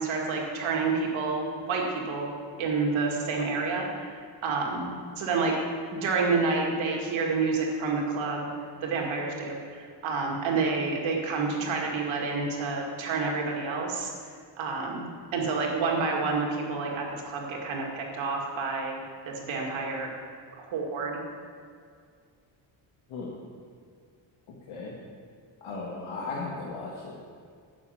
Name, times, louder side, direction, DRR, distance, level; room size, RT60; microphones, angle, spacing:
voice 1, 0.0-2.3 2.6-4.9 5.2-5.6 5.9-8.5 8.8-14.1 14.6-19.0 19.3-20.1 20.6-21.2, right 4 dB, 75° right, -1 dB, 2.5 m, -29 dB
voice 2, 25.6-27.1, left 3 dB, 80° left, -4 dB, 1.9 m, -36 dB
9.8 x 7.0 x 8.6 m, 2.2 s
cardioid pair, 155°, 47 cm